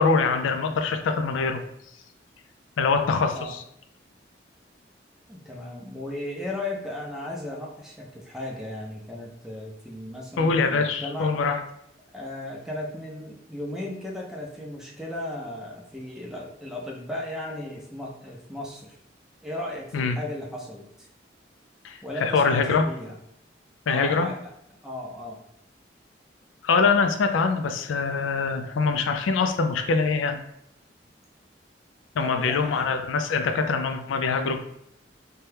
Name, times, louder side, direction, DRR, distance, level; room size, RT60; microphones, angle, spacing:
voice 1, 0.0-1.6 2.8-3.6 10.4-11.6 19.9-20.2 21.8-22.9 23.9-24.3 26.6-30.4 32.2-34.6, left 4 dB, 90° left, 6 dB, 0.4 m, -23 dB
voice 2, 5.3-11.3 12.1-19.0 19.4-20.9 22.0-23.2 23.9-24.4 24.8-25.4 32.2-32.8, left 1 dB, 5° right, -2 dB, 0.5 m, -36 dB
2.7 x 2.2 x 3.3 m, 0.75 s
head